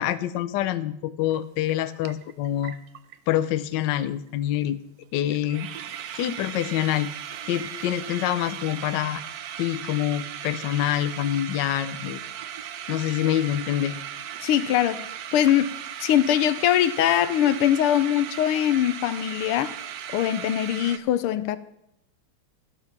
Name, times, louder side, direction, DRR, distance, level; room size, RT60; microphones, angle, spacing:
voice 1, 0.0-2.8 3.3-4.8 5.1-5.7 6.2-7.1 7.5-9.2 9.6-12.2 12.9-14.0, left 12 dB, 70° left, 1.2 m, -26 dB
sound 1, 1.3-1.4 1.7-3.4 3.7-3.8 4.0-4.3 4.5-4.6 5.0-5.1 5.3-21.0, right 9 dB, 70° right, 0.9 m, -37 dB
voice 2, 14.4-15.0 15.3-15.7 16.0-19.8 20.1-21.6, left 11 dB, 90° left, 1.6 m, -22 dB
13.0 x 8.5 x 6.0 m
omnidirectional pair, 2.4 m